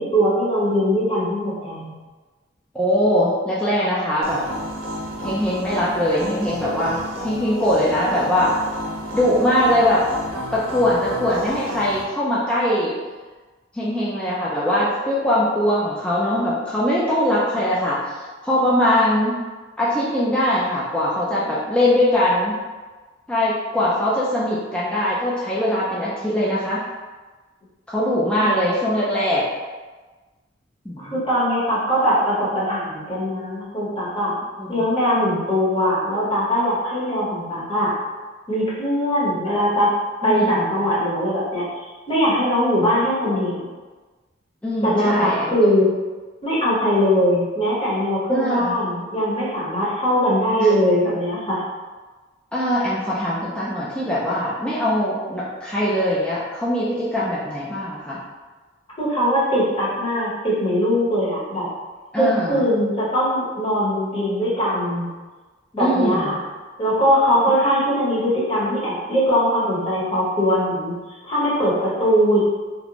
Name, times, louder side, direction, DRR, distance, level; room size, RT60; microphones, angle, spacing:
voice 1, 0.0-1.9 28.4-28.6 31.0-34.4 34.7-38.0 38.5-39.9 40.2-43.7 44.8-45.9 46.4-51.6 59.0-61.7 62.2-65.1 65.7-66.4 66.8-72.4, equal, 30° left, -8 dB, 0.8 m, -21 dB
voice 2, 2.7-4.4 5.2-8.5 9.1-10.0 10.5-13.0 13.7-19.4 19.8-22.5 23.3-26.8 27.9-29.4 30.9-31.2 34.6-34.8 40.2-40.7 44.6-45.5 48.3-48.7 50.6-50.7 52.5-58.2 62.1-62.6 65.8-66.4, left 1 dB, 5° left, -8 dB, 0.3 m, -21 dB
sound 1, 4.2-12.0, equal, 85° right, 0.5 m, -31 dB
2.5 x 2.0 x 2.8 m, 1.3 s
head